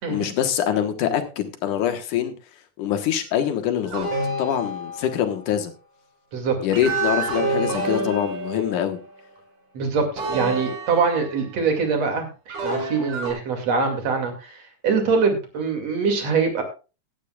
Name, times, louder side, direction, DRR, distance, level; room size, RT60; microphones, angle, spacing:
voice 1, 0.1-2.3 2.8-4.1 4.4-5.7 6.6-9.0, left 10 dB, 80° left, 8 dB, 2.8 m, -24 dB
sound 1, 3.9-5.4 6.7-9.1 10.2-11.6 12.5-13.3, right 2 dB, 70° right, 5.8 m, -28 dB
voice 2, 9.7-16.6, right 5 dB, 55° right, 4 dB, 3.4 m, -23 dB
17.0 x 12.0 x 2.4 m, 0.31 s
omnidirectional pair, 3.7 m